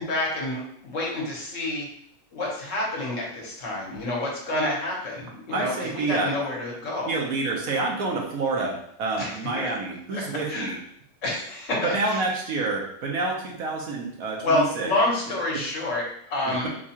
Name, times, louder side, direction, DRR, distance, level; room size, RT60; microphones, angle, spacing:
voice 1, 0.0-1.9 2.3-7.1 9.2-9.7 10.1-10.8 11.2-12.2 14.4-16.7, left 2 dB, 60° left, -3 dB, 1.4 m, -28 dB
voice 2, 5.5-6.3 7.0-10.8 11.8-14.9 16.5-16.7, right 3 dB, 80° right, -1 dB, 1.2 m, -28 dB
4.5 x 2.4 x 2.8 m, 0.68 s
omnidirectional pair, 1.5 m